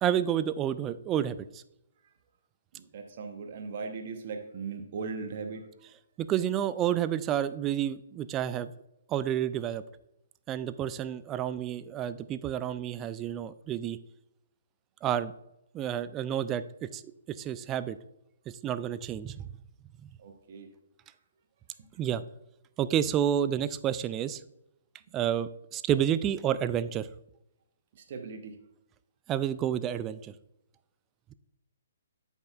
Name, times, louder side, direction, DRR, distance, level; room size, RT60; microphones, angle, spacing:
voice 1, 0.0-1.6 6.2-8.7 9.1-9.8 10.5-14.0 15.0-15.3 15.7-17.0 17.3-18.0 18.6-19.4 22.0-22.2 22.8-24.4 25.1-27.1 29.3-30.3, right 10 dB, 20° right, 14 dB, 0.3 m, -30 dB
voice 2, 2.7-5.7 20.2-20.7 27.9-28.6, right 4 dB, 45° right, 3 dB, 0.9 m, -39 dB
13.0 x 5.3 x 2.4 m, 0.84 s
figure-of-eight pair, 130°, 0 cm